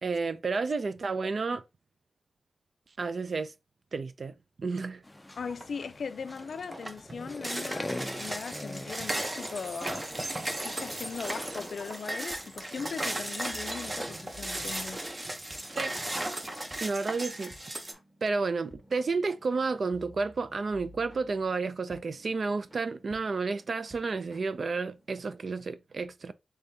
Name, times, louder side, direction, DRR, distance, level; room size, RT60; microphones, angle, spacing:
voice 1, 0.0-1.6 3.0-3.5 3.9-4.3 4.6-5.0 15.7-15.9 16.8-17.5 18.2-26.3, right 4 dB, 55° right, 0.4 m, -31 dB
sound 1, 5.0-11.2, left 1 dB, 15° left, 0.4 m, -43 dB
voice 2, 5.4-10.0 10.5-15.0, left 5 dB, 75° left, 0.4 m, -39 dB
sound 2, 5.5-5.9 6.3-17.9, right 1 dB, 25° right, 0.8 m, -36 dB
sound 3, 12.3-25.1, right 1 dB, 10° right, 1.4 m, -56 dB
5.1 x 3.4 x 2.7 m
wide cardioid pair, 130°, 0 cm